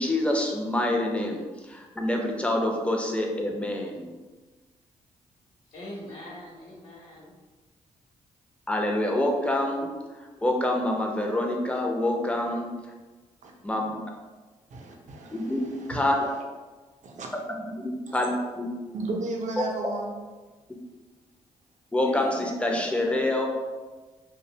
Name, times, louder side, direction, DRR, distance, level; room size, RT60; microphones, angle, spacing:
voice 1, 0.0-4.2 8.7-9.9 10.1-12.7 13.6-14.0 15.3-16.1 17.6-18.7 21.9-23.5, left 1 dB, 10° left, 1 dB, 0.5 m, -27 dB
voice 2, 5.7-7.3 22.0-23.2, left 1 dB, 65° left, -8 dB, 0.9 m, -42 dB
voice 3, 14.7-16.1 17.0-17.4 18.1-18.2 18.9-20.2, right 2 dB, 55° right, 0 dB, 0.6 m, -34 dB
2.5 x 2.1 x 2.7 m, 1.3 s
supercardioid pair, 55°, 14 cm